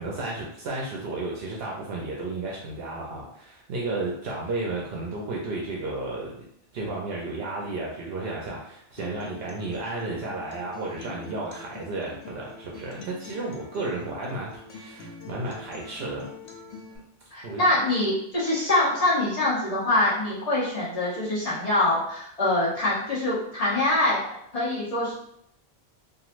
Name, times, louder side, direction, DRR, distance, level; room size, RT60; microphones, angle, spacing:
voice 1, 0.0-6.4 6.7-16.3 17.4-17.6, right 2 dB, 70° right, -3 dB, 0.8 m, -33 dB
Acoustic guitar, 9.0-17.0, left 4 dB, 85° left, 0.8 m, -44 dB
voice 2, 17.3-24.2 24.5-25.1, left 2 dB, 40° left, -8 dB, 0.9 m, -24 dB
3.0 x 2.5 x 2.4 m, 0.71 s
omnidirectional pair, 1.1 m